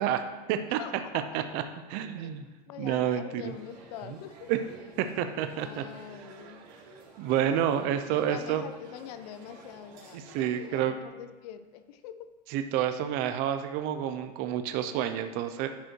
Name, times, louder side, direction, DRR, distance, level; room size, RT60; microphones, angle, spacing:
voice 1, 0.0-0.8 1.3-1.6 1.9-2.4 2.8-3.5 4.5-4.6 5.0-5.8 6.2-6.3 7.2-8.6 10.1-10.9 12.5-15.7, right 10 dB, 45° right, 8 dB, 0.6 m, -29 dB
voice 2, 0.8-1.3 2.2-2.3 2.7-4.5 5.5-6.6 7.4-7.8 8.1-12.3, left 10 dB, 70° left, 11 dB, 0.7 m, -44 dB
sound 1, 3.4-10.8, right 3 dB, 90° right, 3.2 m, -52 dB
10.0 x 5.3 x 4.6 m, 1.2 s
supercardioid pair, 155°, 21 cm